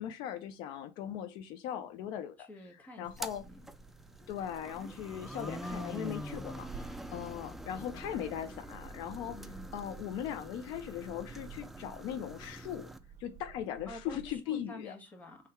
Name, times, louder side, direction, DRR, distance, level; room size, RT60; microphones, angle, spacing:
voice 1, 0.0-2.5 3.0-3.4 4.3-9.4 9.7-12.9 13.2-15.0, left 10 dB, 70° left, 0.5 m, -39 dB
voice 2, 2.4-3.6 9.3-9.8 13.9-15.4, left 1 dB, 20° left, 1.5 m, -49 dB
sound 1, 3.0-13.0, equal, 5° right, 0.4 m, -45 dB
sound 2, 3.0-14.4, right 6 dB, 45° right, 0.8 m, -53 dB
3.7 x 3.2 x 4.4 m
cardioid pair, 120°, 8 cm